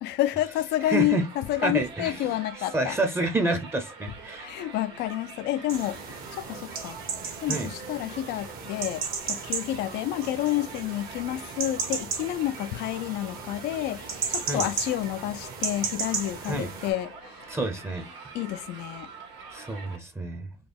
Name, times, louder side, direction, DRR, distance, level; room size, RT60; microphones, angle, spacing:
voice 1, 0.0-3.0 4.4-7.0 7.4-17.5 18.3-19.1, left 14 dB, 80° left, 0.4 m, -29 dB
Crowd, 0.7-20.0, right 4 dB, 85° right, 1.6 m, -45 dB
voice 2, 0.9-1.2 1.6-2.2 2.7-4.6 7.5-7.7 14.5-14.7 16.5-16.7 17.5-18.0 19.5-20.5, right 2 dB, 15° right, 0.6 m, -28 dB
sound 1, 5.7-16.9, right 5 dB, 60° right, 1.1 m, -35 dB
4.0 x 2.3 x 3.3 m
cardioid pair, 110°, 17 cm